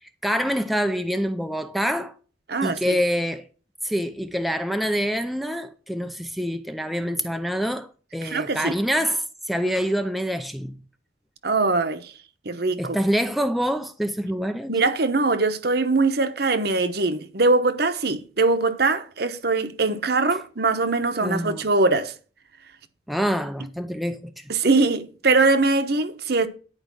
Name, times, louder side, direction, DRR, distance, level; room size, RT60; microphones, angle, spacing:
voice 1, 0.2-2.1 2.6-3.5 3.8-10.8 12.8-14.7 21.2-21.6 23.1-24.4, equal, ahead, 0.5 m, -26 dB
voice 2, 2.5-3.0 8.2-8.7 11.4-12.1 12.4-13.0 14.7-22.1 24.5-26.5, right 3 dB, 55° right, 1.0 m, -22 dB
10.5 x 5.0 x 7.5 m
head